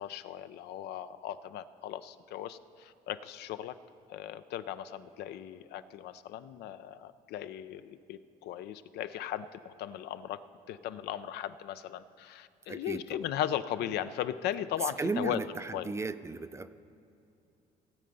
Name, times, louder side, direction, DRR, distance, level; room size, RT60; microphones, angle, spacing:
voice 1, 0.0-3.7 4.1-10.4 10.7-15.4 15.7-15.9, left 11 dB, 75° left, 13 dB, 0.5 m, -37 dB
voice 2, 12.7-13.3 14.8-16.7, right 3 dB, 15° right, 12 dB, 0.4 m, -35 dB
17.0 x 7.7 x 5.3 m, 2.7 s
cardioid pair, 110°, 17 cm